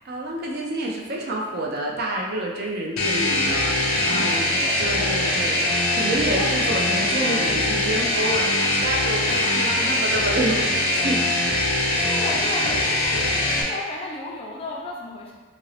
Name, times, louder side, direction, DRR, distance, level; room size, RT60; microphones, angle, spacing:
voice 1, 0.1-5.6 5.9-11.2, right 1 dB, 50° right, -1 dB, 0.4 m, -28 dB
sound 1, 3.0-13.6, left 1 dB, 90° left, 0.6 m, -22 dB
voice 2, 4.1-5.9 6.2-6.8 9.3-9.8 11.9-15.3, left 2 dB, 25° left, -2 dB, 0.4 m, -34 dB
2.8 x 2.5 x 3.1 m, 1.4 s
head